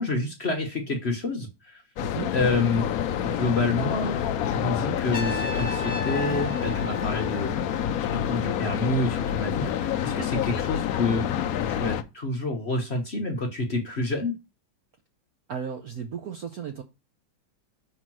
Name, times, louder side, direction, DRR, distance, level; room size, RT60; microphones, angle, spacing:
voice 1, 0.0-1.8 2.3-2.9 3.2-4.2 4.4-11.4 11.6-14.3, left 2 dB, 40° left, 2 dB, 1.0 m, -28 dB
sound 1, 2.0-12.0, left 9 dB, 80° left, 0.8 m, -28 dB
voice 2, 2.0-2.3 15.5-16.8, right 7 dB, 70° right, 4 dB, 0.9 m, -35 dB
Trumpet, 5.1-8.1, left 1 dB, 20° left, 1.4 m, -36 dB
5.8 x 3.8 x 6.0 m, 0.27 s
omnidirectional pair, 2.2 m